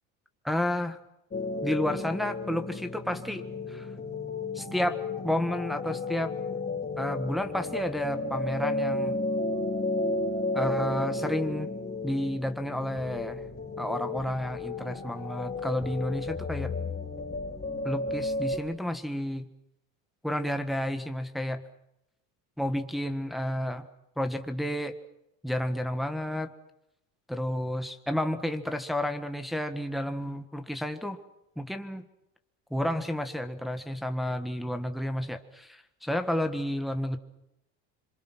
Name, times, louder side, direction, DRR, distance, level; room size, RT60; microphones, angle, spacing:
voice 1, 0.4-1.0 1.6-3.4 3.7-3.9 4.5-5.0 5.2-6.3 7.0-9.1 10.5-11.7 12.0-13.4 13.8-16.7 17.8-19.4 20.2-21.6 22.6-23.9 24.2-24.9 25.4-26.5 27.3-31.2 31.6-32.1 32.7-37.2, left 1 dB, ahead, 6 dB, 1.6 m, -31 dB
sound 1, 1.3-18.6, left 2 dB, 30° left, 5.1 m, -33 dB
26.0 x 24.0 x 6.2 m, 0.82 s
supercardioid pair, 110°, 35 cm